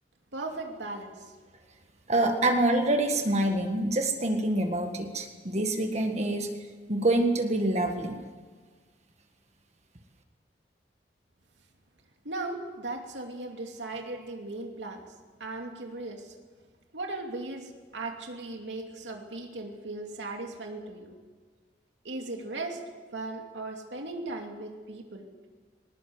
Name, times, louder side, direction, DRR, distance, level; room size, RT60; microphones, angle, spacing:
voice 1, 0.3-1.3 12.2-15.0 15.4-16.3 16.9-21.1 22.0-22.8 23.1-25.3, right 2 dB, 90° right, 2 dB, 2.7 m, -37 dB
voice 2, 2.1-6.5 6.9-8.2, right 1 dB, 40° right, 5 dB, 1.7 m, -26 dB
20.0 x 19.5 x 8.0 m, 1.5 s
head